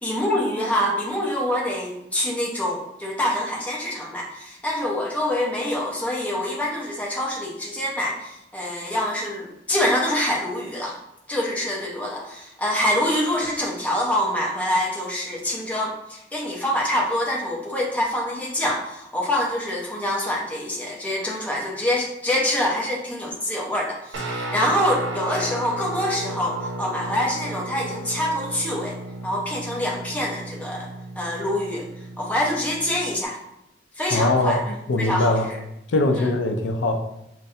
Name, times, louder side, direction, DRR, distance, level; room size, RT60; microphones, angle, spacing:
voice 1, 0.0-11.0 11.3-29.0 29.2-30.9 31.2-31.9 32.2-33.4 34.0-34.6 35.0-35.3 36.1-36.3, left 1 dB, 10° left, -3 dB, 0.7 m, -25 dB
Guitar, 24.1-33.2, right 1 dB, 80° right, 0.6 m, -34 dB
voice 2, 34.1-35.5 35.9-37.0, left 2 dB, 90° left, 4 dB, 0.5 m, -22 dB
5.2 x 2.2 x 2.6 m, 0.84 s
head